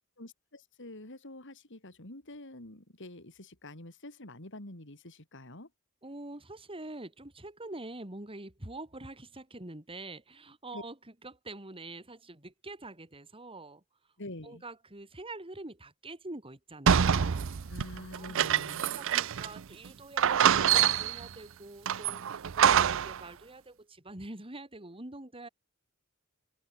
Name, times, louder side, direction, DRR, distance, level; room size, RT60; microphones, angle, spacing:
voice 1, 0.2-5.7 10.7-10.8 14.2-14.6 17.7-19.0, left 1 dB, 60° left, 4.4 m, -46 dB
voice 2, 6.0-11.0 11.2-13.8 14.4-17.5 18.1-18.5 18.8-25.5, right 2 dB, 25° right, 2.9 m, -45 dB
sound 1, 16.9-19.6 19.8-19.9 20.2-21.3 21.9-23.2, right 8 dB, 65° right, 0.6 m, -26 dB
open air
head